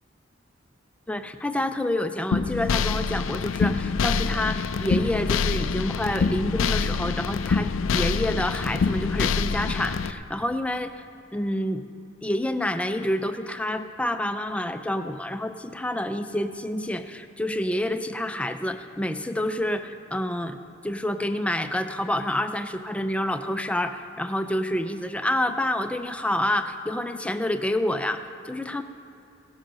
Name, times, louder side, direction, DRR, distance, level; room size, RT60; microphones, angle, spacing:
voice 1, 1.1-11.0 11.3-11.8 12.2-20.6 20.8-28.8, left 1 dB, 5° left, 8 dB, 0.4 m, -28 dB
sound 1, 2.3-10.1, left 5 dB, 80° left, 0.4 m, -25 dB
16.5 x 7.8 x 6.3 m, 2.6 s
head